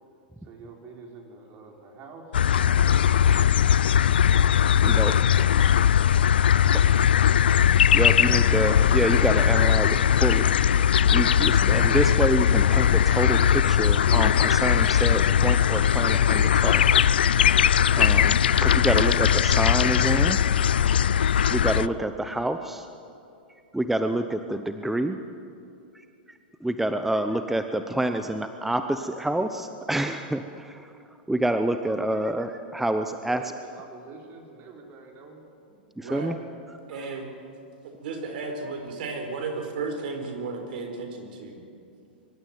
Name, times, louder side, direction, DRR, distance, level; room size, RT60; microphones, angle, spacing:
voice 1, 0.4-3.1 5.3-5.9 33.0-35.4, right 4 dB, 40° right, 1 dB, 4.8 m, -47 dB
sound 1, 2.3-21.9, left 9 dB, 80° left, 0.4 m, -20 dB
voice 2, 4.8-5.1 7.9-10.5 11.1-16.8 18.0-18.3 18.6-20.4 21.5-22.9 23.7-25.2 26.6-30.9 31.3-33.4 36.0-36.4, right 1 dB, 5° right, 8 dB, 0.8 m, -27 dB
voice 3, 36.0-36.3 36.9-37.3 37.8-41.6, right 4 dB, 65° right, 5 dB, 4.1 m, -34 dB
24.0 x 13.0 x 9.4 m, 2.6 s
hypercardioid pair, 110°, 5 cm